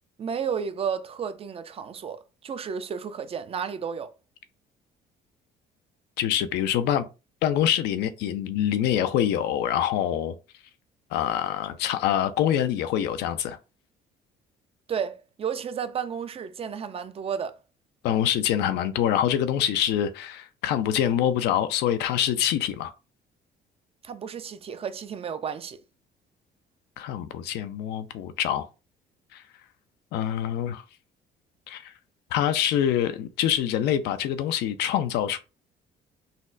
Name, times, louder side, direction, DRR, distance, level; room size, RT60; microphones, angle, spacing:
voice 1, 0.2-4.1 14.9-17.6 24.0-25.8, right 7 dB, 35° right, 0.4 m, -32 dB
voice 2, 6.2-7.1 7.4-10.4 11.1-13.6 18.0-22.9 27.0-28.7 29.3-29.4 30.1-30.8 31.7-31.9 32.3-35.4, left 10 dB, 80° left, 0.5 m, -25 dB
4.0 x 2.1 x 2.5 m
cardioid pair, 110°, 17 cm